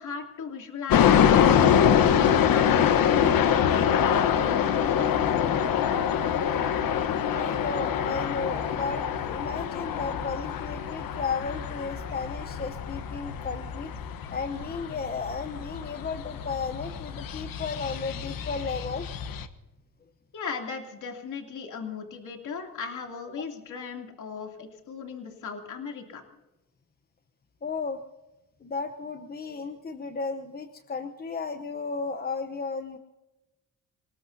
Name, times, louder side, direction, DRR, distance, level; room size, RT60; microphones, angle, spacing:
voice 1, 0.0-4.8 20.3-26.2, left 5 dB, 60° left, 2 dB, 2.9 m, -37 dB
sound 1, 0.9-19.5, left 8 dB, 75° left, 1.1 m, -25 dB
voice 2, 7.3-13.9 14.3-19.1 27.6-28.0 28.6-33.0, left 4 dB, 25° left, 7 dB, 0.9 m, -34 dB
26.5 x 19.5 x 2.7 m, 1.0 s
cardioid pair, 125°, 34 cm